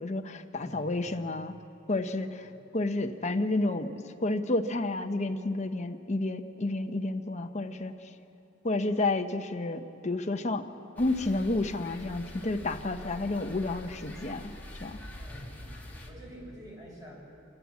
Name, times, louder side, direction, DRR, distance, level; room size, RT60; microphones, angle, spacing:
voice 1, 0.0-1.5 1.9-2.5 2.7-7.9 8.6-10.7 11.0-14.5 14.8-15.0, left 2 dB, 35° left, 6 dB, 0.9 m, -30 dB
voice 2, 0.5-1.1 2.4-2.5 15.2-15.8 16.1-17.1, equal, 20° right, -4 dB, 6.0 m, -47 dB
sound 1, 11.0-16.1, left 1 dB, 10° left, 2.2 m, -45 dB
27.5 x 13.5 x 7.4 m, 2.9 s
head